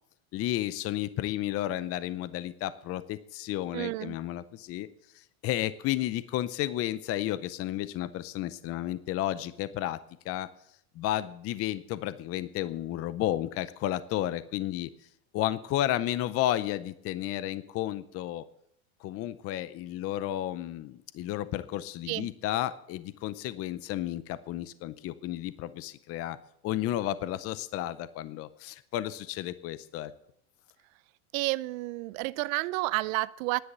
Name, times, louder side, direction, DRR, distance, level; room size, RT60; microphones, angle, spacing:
voice 1, 0.3-4.9 5.1-10.0 10.2-10.5 11.0-14.9 15.3-18.4 19.0-26.4 26.6-30.1, left 13 dB, 35° left, 16 dB, 0.6 m, -32 dB
voice 2, 3.7-4.1 22.1-22.3 31.3-33.6, right 21 dB, 65° right, 17 dB, 0.6 m, -30 dB
10.5 x 9.9 x 6.8 m, 0.72 s
supercardioid pair, 130°, 43 cm